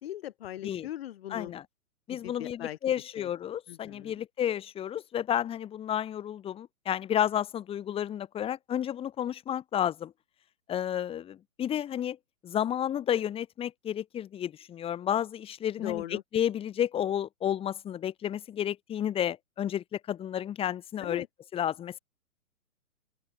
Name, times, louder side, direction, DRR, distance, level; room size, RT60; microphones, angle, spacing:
voice 1, 0.0-1.5 2.1-2.8 3.2-3.3 3.7-4.2 15.8-16.2 21.0-21.3, left 12 dB, 40° left, 5.6 m, -39 dB
voice 2, 1.3-1.6 2.1-10.1 10.7-12.2 12.4-16.0 16.3-21.2 21.5-22.0, left 10 dB, 10° left, 4.4 m, -31 dB
open air
hypercardioid pair, 155°, 44 cm